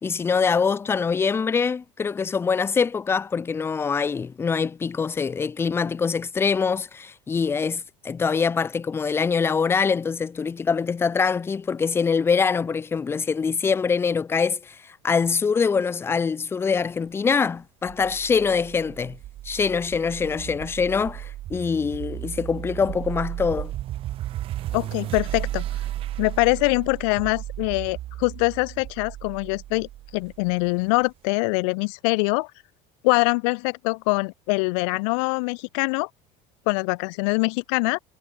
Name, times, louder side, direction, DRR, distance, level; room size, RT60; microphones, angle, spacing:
voice 1, 0.0-19.2 19.4-23.7, left 5 dB, 15° left, 1.3 m, -24 dB
sound 1, 17.9-31.0, right 14 dB, 35° right, 1.1 m, -34 dB
voice 2, 24.7-25.6 26.2-29.9 30.1-32.5 33.0-36.1 36.7-38.0, left 31 dB, 70° left, 0.7 m, -23 dB
cardioid pair, 165°, 16 cm